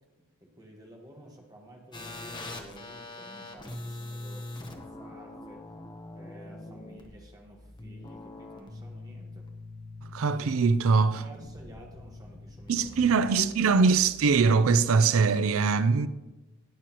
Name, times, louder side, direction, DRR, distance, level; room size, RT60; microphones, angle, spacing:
voice 1, 0.4-5.6 6.1-9.5 10.9-13.8, right 1 dB, 15° right, 1.4 m, -52 dB
sound 1, 1.9-14.8, left 2 dB, 20° left, 0.9 m, -44 dB
voice 2, 10.0-11.2 12.7-16.1, right 4 dB, 70° right, 0.4 m, -22 dB
18.5 x 6.3 x 3.0 m
head